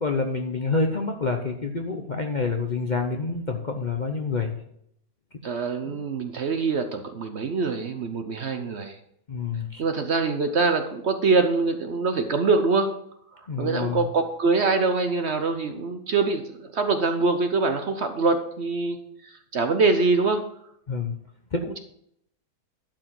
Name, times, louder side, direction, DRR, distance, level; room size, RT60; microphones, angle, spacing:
voice 1, 0.0-4.5 5.8-6.0 9.3-9.8 13.5-14.1 20.9-21.2 21.5-21.7, left 4 dB, 40° left, 3 dB, 0.7 m, -27 dB
voice 2, 5.4-9.0 9.8-12.9 13.6-19.0 19.2-20.5 21.6-21.8, right 4 dB, 50° right, 7 dB, 0.9 m, -24 dB
12.0 x 4.8 x 7.5 m, 0.73 s
omnidirectional pair, 1.7 m